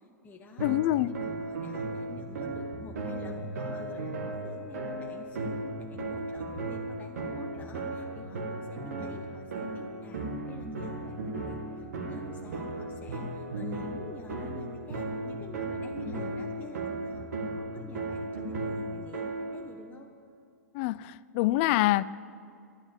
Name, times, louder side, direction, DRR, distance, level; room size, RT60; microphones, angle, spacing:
voice 1, 0.0-0.7 1.1-20.1, left 4 dB, 15° left, 1 dB, 1.1 m, -49 dB
voice 2, 0.6-1.1 20.7-22.0, left 17 dB, 40° left, 19 dB, 0.4 m, -25 dB
sound 1, 0.6-19.6, right 2 dB, 65° right, 2.4 m, -36 dB
12.0 x 11.0 x 7.4 m, 2.4 s
figure-of-eight pair, 100°, 9 cm